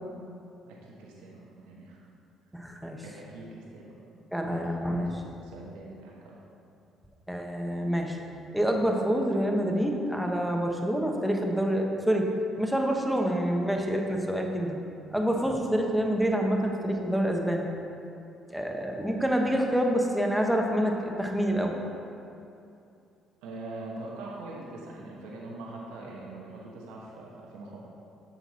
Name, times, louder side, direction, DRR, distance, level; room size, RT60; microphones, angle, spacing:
voice 1, 0.6-2.1 3.0-3.9 4.5-6.4 23.4-27.8, right 2 dB, 85° right, -3 dB, 1.1 m, -43 dB
voice 2, 2.5-3.0 4.3-5.1 7.3-8.2 8.5-12.3 12.6-14.8 15.1-17.7 18.5-21.8, equal, ahead, 1 dB, 1.0 m, -27 dB
8.2 x 5.9 x 4.2 m, 2.6 s
supercardioid pair, 70°, 0 cm